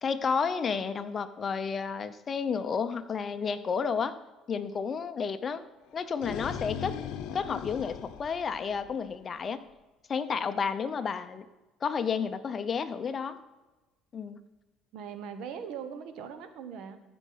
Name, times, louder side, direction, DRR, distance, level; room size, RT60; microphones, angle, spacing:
voice 1, 0.0-4.1 4.5-5.7 5.9-6.9 7.3-9.6 10.1-11.4 11.8-13.4 14.1-14.4, left 6 dB, 35° left, 11 dB, 0.6 m, -31 dB
sound 1, 5.9-9.1, left 8 dB, 70° left, 0.8 m, -38 dB
voice 2, 14.9-17.0, right 7 dB, 70° right, 9 dB, 1.1 m, -40 dB
14.5 x 5.1 x 5.6 m, 1.1 s
cardioid pair, 120°, 0 cm